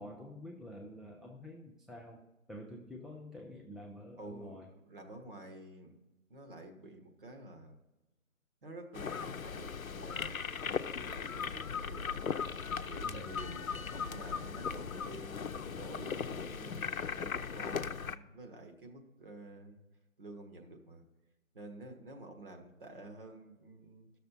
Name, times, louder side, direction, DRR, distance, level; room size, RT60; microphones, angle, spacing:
voice 1, 0.0-4.7 13.1-13.4, left 1 dB, ahead, 0 dB, 0.3 m, -48 dB
voice 2, 4.2-4.6 4.9-5.9 6.3-7.8 8.6-10.5 10.9-12.2 12.9-16.8 17.2-19.8 20.2-21.0 21.5-24.1, right 2 dB, 40° right, 3 dB, 1.5 m, -50 dB
sound 1, 8.9-18.2, left 6 dB, 85° left, 0.6 m, -38 dB
13.0 x 6.6 x 4.2 m, 1.1 s
figure-of-eight pair, 155°, 40 cm